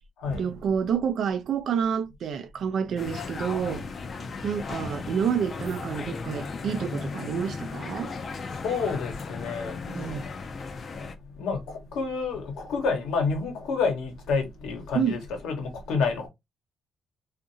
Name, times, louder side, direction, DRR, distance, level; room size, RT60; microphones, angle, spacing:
voice 1, 0.3-3.9 4.2-8.1 9.9-10.3 14.9-15.1, right 7 dB, 65° right, 0.4 m, -29 dB
sound 1, 3.0-11.1, left 4 dB, 45° left, 0.5 m, -36 dB
voice 2, 8.6-10.1 11.4-16.3, left 4 dB, 85° left, 1.0 m, -29 dB
2.7 x 2.5 x 2.6 m
cardioid pair, 90°, 0 cm